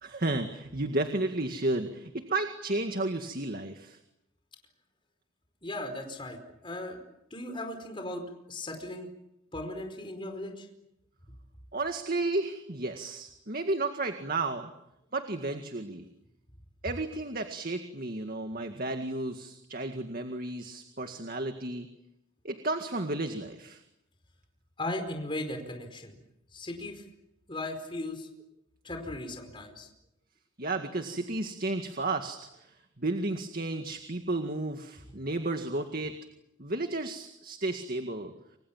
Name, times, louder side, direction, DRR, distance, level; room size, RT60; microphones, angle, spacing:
voice 1, 0.0-4.0 11.7-14.7 15.1-16.0 16.8-21.9 22.4-23.8 30.6-36.2 36.6-38.3, right 2 dB, 45° right, 6 dB, 2.0 m, -33 dB
voice 2, 5.6-6.4 6.6-7.0 7.3-9.1 9.5-10.7 24.8-26.2 26.5-27.0 27.5-28.3 28.8-29.9, left 1 dB, 25° left, 5 dB, 4.9 m, -37 dB
29.5 x 25.5 x 7.4 m, 0.85 s
head